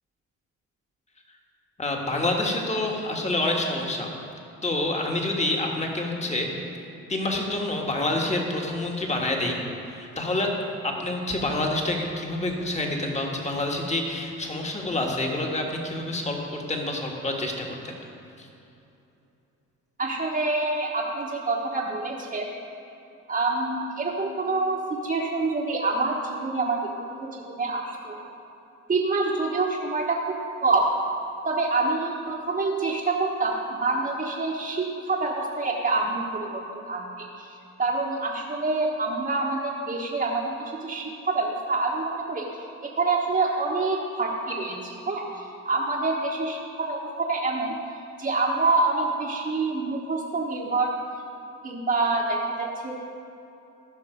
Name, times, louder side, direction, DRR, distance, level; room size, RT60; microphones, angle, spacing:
voice 1, 1.8-4.1 4.6-6.5 7.1-9.6 9.8-10.5 10.8-16.4 16.7-17.9 18.4-18.5, left 2 dB, 25° left, 0 dB, 1.6 m, -27 dB
voice 2, 20.0-22.5 23.3-26.8 27.2-28.2 28.9-30.9 31.4-42.5 42.8-47.7 48.2-50.9 51.6-53.0, right 3 dB, 30° right, -5 dB, 1.2 m, -26 dB
14.5 x 6.0 x 5.0 m, 2.8 s
cardioid pair, 90°, 30 cm